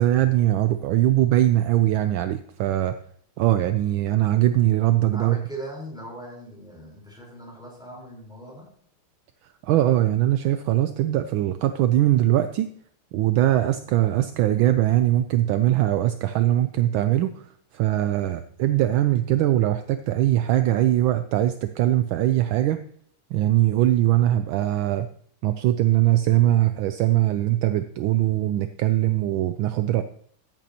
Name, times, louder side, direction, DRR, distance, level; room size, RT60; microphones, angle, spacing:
voice 1, 0.0-2.9 3.4-5.4 9.6-12.7 13.1-17.5 17.7-22.8 23.3-25.1 25.4-30.0, right 13 dB, 75° right, 10 dB, 1.3 m, -21 dB
voice 2, 5.1-8.7, right 1 dB, ahead, -2 dB, 3.9 m, -39 dB
13.5 x 9.2 x 2.9 m, 0.63 s
omnidirectional pair, 2.3 m